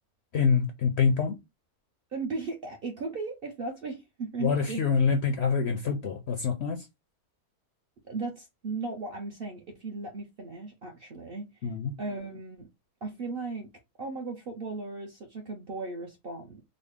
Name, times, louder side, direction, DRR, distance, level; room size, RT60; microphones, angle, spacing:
voice 1, 0.3-1.4 4.4-6.8 11.6-11.9, left 5 dB, 65° left, 0.6 m, -26 dB
voice 2, 2.1-4.8 8.1-11.5 12.0-12.7 13.0-13.7 14.0-16.6, right 3 dB, 55° right, 0.6 m, -36 dB
3.9 x 2.0 x 3.4 m
omnidirectional pair, 1.6 m